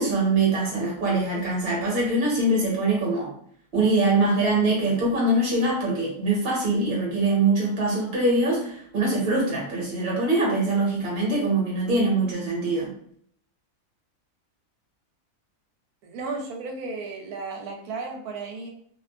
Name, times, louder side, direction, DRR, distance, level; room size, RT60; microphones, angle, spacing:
voice 1, 0.0-3.3 3.7-12.9, right 2 dB, 45° right, -4 dB, 1.1 m, -23 dB
voice 2, 16.0-18.7, right 3 dB, 75° right, 3 dB, 1.0 m, -34 dB
2.6 x 2.3 x 2.3 m, 0.64 s
omnidirectional pair, 1.6 m